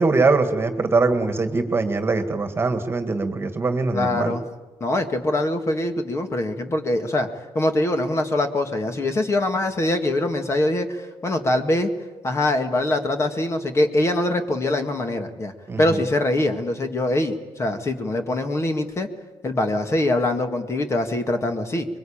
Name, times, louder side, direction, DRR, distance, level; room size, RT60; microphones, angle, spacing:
voice 1, 0.0-4.3 15.7-16.0, right 3 dB, 25° right, 8 dB, 2.0 m, -22 dB
voice 2, 3.9-4.4 4.8-11.9 12.2-15.5 15.8-19.1 19.4-21.9, left 1 dB, 30° left, 6 dB, 2.0 m, -23 dB
24.0 x 23.0 x 8.9 m, 1.2 s
cardioid pair, 130°, 10 cm